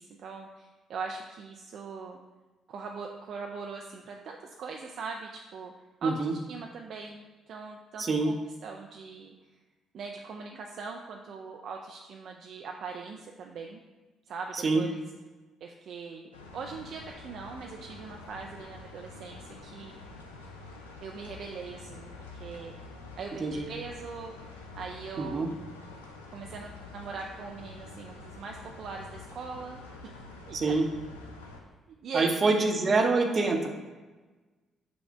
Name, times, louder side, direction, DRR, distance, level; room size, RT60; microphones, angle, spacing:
voice 1, 0.0-2.2 2.7-5.7 6.0-8.4 8.6-9.3 9.9-13.8 14.3-15.0 15.6-20.0 21.0-22.7 23.2-24.5 24.8-25.5 26.3-30.2 30.5-30.8 31.6-32.6, right 4 dB, 60° right, 1 dB, 0.3 m, -41 dB
voice 2, 6.0-6.3 8.0-8.3 14.5-14.8 23.4-23.6 25.2-25.5 30.5-30.8 32.1-33.7, right 3 dB, 40° right, 3 dB, 0.7 m, -25 dB
sound 1, 16.3-31.6, left 3 dB, 85° left, 0.4 m, -47 dB
5.5 x 2.1 x 4.5 m, 1.3 s
hypercardioid pair, 45°, 0 cm